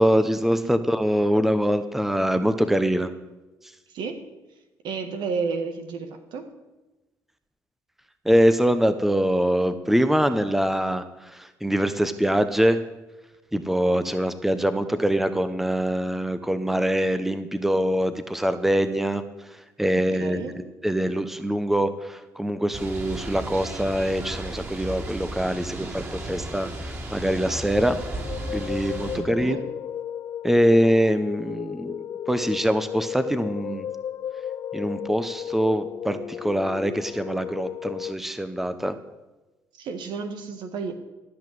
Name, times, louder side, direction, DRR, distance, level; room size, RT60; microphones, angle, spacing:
voice 1, 0.0-3.1 3.6-3.7 8.2-12.8 13.5-28.0 28.5-29.6 30.4-33.9 34.7-39.0, equal, 5° right, 11 dB, 1.0 m, -24 dB
voice 2, 3.9-4.2 4.8-6.4 20.2-20.6 29.1-29.6 39.7-40.9, right 5 dB, 70° right, 7 dB, 1.5 m, -31 dB
sound 1, 22.7-29.2, right 1 dB, 30° right, 4.5 m, -34 dB
sound 2, 27.9-38.1, left 9 dB, 50° left, 0.3 m, -34 dB
13.5 x 5.9 x 7.8 m, 1.1 s
hypercardioid pair, 60°, 8 cm